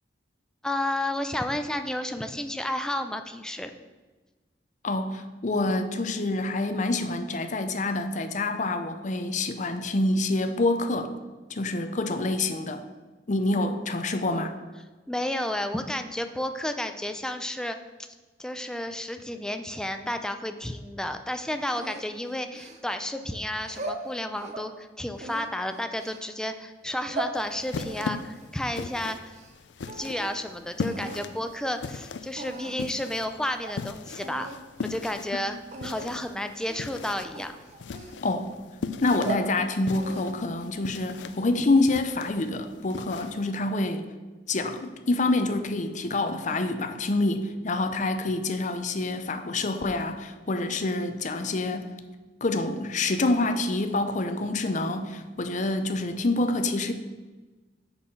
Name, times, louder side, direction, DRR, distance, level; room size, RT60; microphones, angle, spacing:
voice 1, 0.6-3.7 13.5-13.7 15.1-17.8 18.4-29.4 29.9-34.5 34.8-35.6 35.8-37.6, left 1 dB, 5° left, 7 dB, 0.4 m, -32 dB
voice 2, 4.8-11.1 11.5-12.8 13.3-14.5 35.4-35.5 38.2-38.5 39.0-44.0 44.5-51.9 52.4-56.9, left 2 dB, 45° left, 8 dB, 0.6 m, -27 dB
sound 1, 21.8-23.1 23.6-24.7 25.2-26.3 26.8-27.4 27.8-29.5 29.8-30.4 30.9-31.3 32.0-32.1 32.4-32.9 33.3-33.4 33.6-33.8 34.2-34.6 34.9-35.2 35.7-36.1 36.6-36.9 37.3-38.5 39.0-39.5 39.9-40.4, right 2 dB, 40° right, 0.7 m, -39 dB
sound 2, 27.3-43.5, left 4 dB, 85° left, 0.5 m, -39 dB
6.5 x 5.6 x 5.7 m, 1.2 s
head